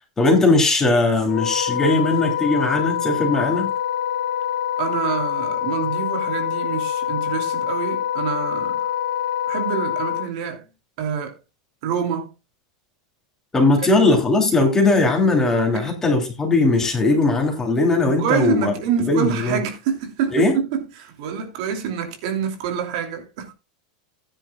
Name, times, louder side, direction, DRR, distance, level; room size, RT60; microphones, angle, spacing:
voice 1, 0.2-3.7 13.5-18.7 19.0-19.6 20.3-20.6, left 2 dB, 15° left, 3.0 m, -19 dB
Wind instrument woodwind instrument, 1.3-10.3, left 10 dB, 75° left, 1.7 m, -25 dB
voice 2, 4.8-8.9 9.5-10.6 11.0-11.3 11.8-12.3 13.8-14.0 15.7-15.9 18.0-23.5, right 7 dB, 60° right, 2.7 m, -26 dB
15.0 x 9.9 x 2.3 m
supercardioid pair, 135°, 4 cm